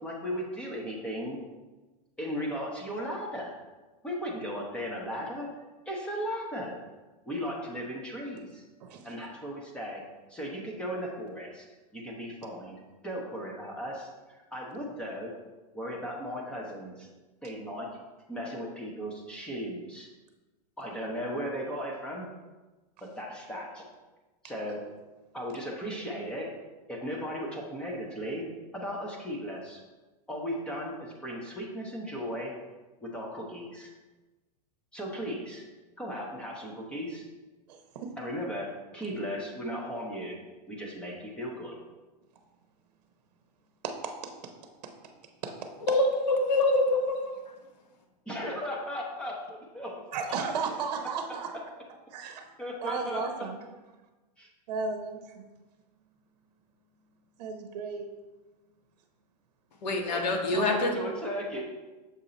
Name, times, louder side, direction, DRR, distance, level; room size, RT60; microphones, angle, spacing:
voice 1, 0.0-1.4 2.2-3.6 4.0-5.5 5.9-6.8 7.3-8.6 9.0-11.6 11.9-15.3 15.7-17.1 17.4-17.9 18.3-20.1 20.8-22.3 23.0-23.8 24.4-24.8 25.3-26.5 26.9-28.4 28.7-29.8 30.3-32.5 33.0-33.9 34.9-35.6 36.0-37.2 38.2-38.7 38.9-40.4 40.7-41.7 48.3-50.3 52.2-52.3 52.6-53.2 54.4-54.5 60.1-61.6, equal, 5° left, -2 dB, 0.8 m, -36 dB
voice 2, 37.7-38.1 43.8-44.1 45.4-45.5 50.1-51.5 52.1-52.4 52.8-53.6 54.7-55.5 57.4-58.1 60.5-61.0, right 5 dB, 70° right, 5 dB, 0.8 m, -34 dB
voice 3, 45.9-47.4 59.8-60.9, left 2 dB, 85° left, 3 dB, 1.1 m, -25 dB
6.7 x 2.8 x 5.0 m, 1.2 s
supercardioid pair, 155°, 21 cm